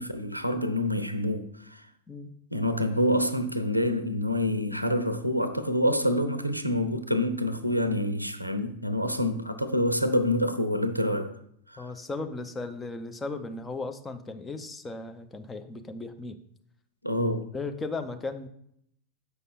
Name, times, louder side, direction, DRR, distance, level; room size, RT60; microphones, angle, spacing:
voice 1, 0.0-1.8 2.5-11.3 11.7-11.9 17.0-17.5, left 1 dB, 90° right, 0.7 m, -27 dB
voice 2, 11.8-16.4 17.5-18.5, left 3 dB, 15° left, 0.7 m, -36 dB
8.2 x 5.5 x 3.9 m
figure-of-eight pair, 90°, 0 cm